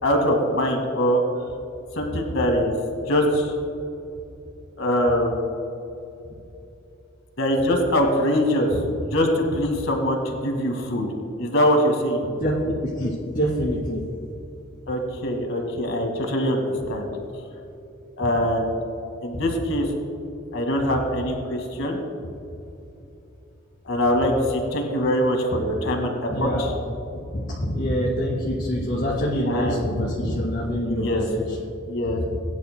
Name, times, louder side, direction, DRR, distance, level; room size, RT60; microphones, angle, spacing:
voice 1, 0.0-1.2 2.0-2.7 3.1-3.5 4.8-5.4 7.4-8.7 9.1-11.1 11.4-12.2 14.9-16.6 16.9-17.1 18.2-18.8 19.2-19.9 20.5-22.0 23.9-26.7 29.4-29.9 30.9-31.3 31.9-32.2, equal, 75° left, 2 dB, 2.0 m, -23 dB
voice 2, 12.3-14.0 18.2-18.3 19.3-19.4 26.3-26.7 27.3-31.6 32.1-32.2, equal, 45° left, -8 dB, 2.4 m, -25 dB
21.5 x 10.5 x 2.2 m, 2.8 s
head